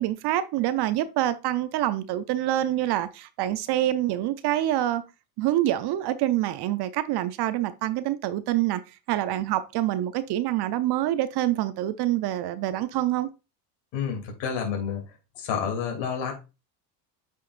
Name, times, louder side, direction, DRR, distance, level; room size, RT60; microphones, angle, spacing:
voice 1, 0.0-5.0 5.4-8.8 9.1-13.3, right 13 dB, 50° right, 0.7 m, -26 dB
voice 2, 13.9-15.0 15.3-16.3, left 7 dB, 60° left, 2.9 m, -29 dB
8.4 x 5.6 x 2.5 m
supercardioid pair, 90°, 50 cm